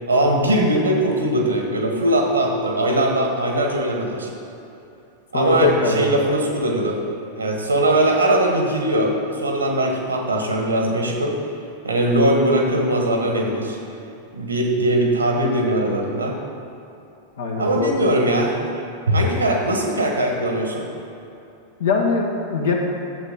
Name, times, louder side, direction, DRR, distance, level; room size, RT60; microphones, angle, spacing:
voice 1, 0.1-4.3 5.3-7.0 7.4-11.4 11.8-13.8 14.3-16.4 17.6-18.5 19.1-20.9, right 1 dB, 75° right, 1 dB, 1.5 m, -20 dB
voice 2, 5.3-6.1 17.4-17.9 21.8-22.8, left 4 dB, 65° left, 0 dB, 1.5 m, -21 dB
11.5 x 7.9 x 4.1 m, 2.8 s
figure-of-eight pair, 90°, 0 cm